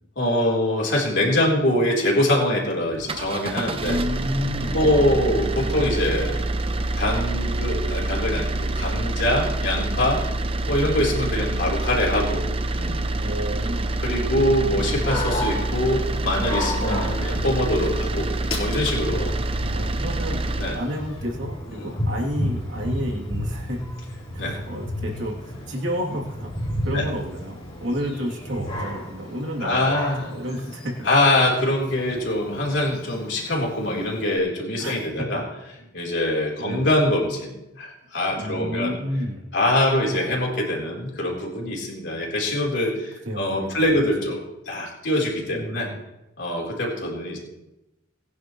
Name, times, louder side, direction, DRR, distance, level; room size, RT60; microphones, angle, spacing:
voice 1, 0.2-4.0 4.7-6.4 7.0-10.2 10.7-12.5 12.8-13.0 14.0-19.4 20.6-20.8 21.7-21.9 24.4-24.6 26.9-27.0 29.6-30.3 31.0-35.4 35.9-37.5 37.8-38.9 39.5-44.4 44.7-45.9 46.4-47.4, left 1 dB, 60° left, -2 dB, 3.8 m, -23 dB
sound 1, 2.9-20.8, right 2 dB, 30° right, 0.6 m, -26 dB
voice 2, 3.8-5.1 5.6-5.8 13.2-13.9 16.7-17.4 19.7-20.4 20.7-23.8 24.3-26.5 26.8-30.0 30.3-31.1 34.8-34.9 36.6-36.9 38.4-39.5 40.1-40.3 43.2-43.9 45.5-46.0, equal, 70° right, -1 dB, 3.0 m, -31 dB
Dog, 14.8-34.4, left 1 dB, 30° left, 4.1 m, -33 dB
20.0 x 10.5 x 3.2 m, 0.95 s
head